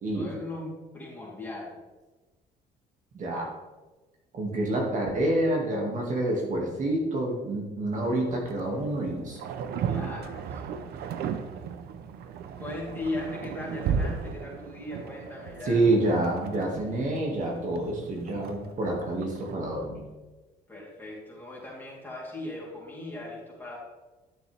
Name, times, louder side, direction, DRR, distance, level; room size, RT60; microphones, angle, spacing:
voice 1, 0.1-1.8 9.9-10.9 12.6-15.9 20.7-23.8, left 2 dB, 10° left, -5 dB, 3.4 m, -38 dB
voice 2, 3.1-3.5 4.3-9.4 15.7-20.0, right 1 dB, 50° right, -1 dB, 2.1 m, -28 dB
sound 1, 7.9-19.5, right 7 dB, 70° right, 0.8 m, -36 dB
11.5 x 6.7 x 3.5 m, 1.2 s
cardioid pair, 110°, 17 cm